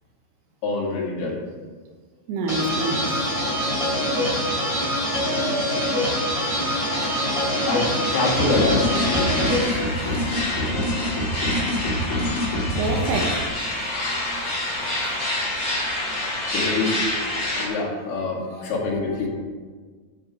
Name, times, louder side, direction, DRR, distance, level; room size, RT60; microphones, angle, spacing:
voice 1, 0.6-1.4 7.7-9.8 16.5-19.3, left 3 dB, 75° left, 4.3 m, -26 dB
voice 2, 2.3-3.3 3.8-4.8 9.2-10.5 12.7-15.3 16.5-16.6 18.5-18.7, right 2 dB, 90° right, 3.2 m, -32 dB
sound 1, 2.5-9.6, equal, 10° right, 2.3 m, -24 dB
sound 2, 4.3-17.7, left 1 dB, 20° left, 3.4 m, -29 dB
sound 3, 8.4-13.5, equal, 40° left, 1.2 m, -26 dB
10.5 x 5.4 x 7.3 m
omnidirectional pair, 4.6 m